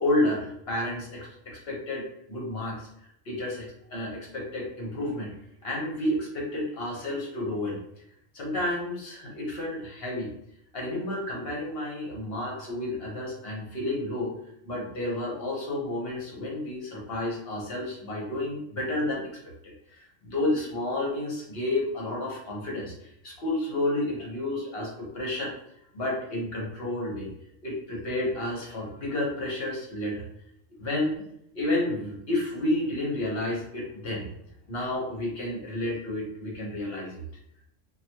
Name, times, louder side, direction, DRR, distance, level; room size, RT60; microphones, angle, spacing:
voice 1, 0.0-2.8 3.3-5.3 5.6-7.8 8.3-10.3 10.7-14.3 14.6-19.3 19.6-25.5 25.9-27.3 27.6-30.2 30.7-31.2 31.5-34.3 34.7-37.2, left 1 dB, 55° left, -2 dB, 1.1 m, -31 dB
3.0 x 2.4 x 2.8 m, 0.75 s
omnidirectional pair, 1.3 m